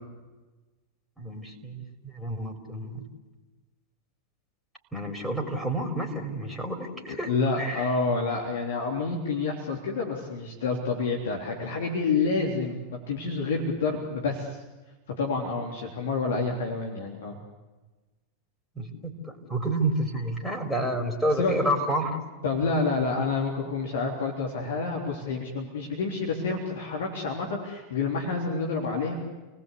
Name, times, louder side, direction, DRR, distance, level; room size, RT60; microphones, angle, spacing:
voice 1, 1.2-1.8 2.1-3.0 4.9-7.3 7.6-7.9 18.8-22.2, right 1 dB, ahead, 2 dB, 4.2 m, -29 dB
voice 2, 7.1-14.6 15.2-17.4 21.4-21.5 22.4-29.1, left 4 dB, 65° left, 0 dB, 3.6 m, -28 dB
29.5 x 19.5 x 8.4 m, 1.2 s
figure-of-eight pair, 90°, 0 cm